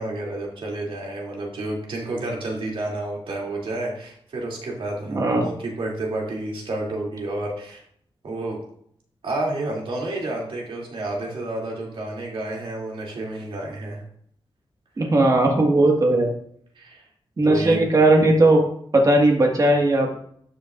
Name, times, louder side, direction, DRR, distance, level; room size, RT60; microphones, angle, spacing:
voice 1, 0.0-7.8 8.2-8.6 9.2-14.0 16.8-17.0 17.4-17.8, right 2 dB, 70° right, -2 dB, 2.8 m, -30 dB
voice 2, 5.1-5.5 15.0-16.3 17.4-18.6 18.9-20.2, right 2 dB, 40° right, 0 dB, 1.8 m, -17 dB
12.5 x 7.1 x 2.5 m, 0.65 s
wide cardioid pair, 170°, 9 cm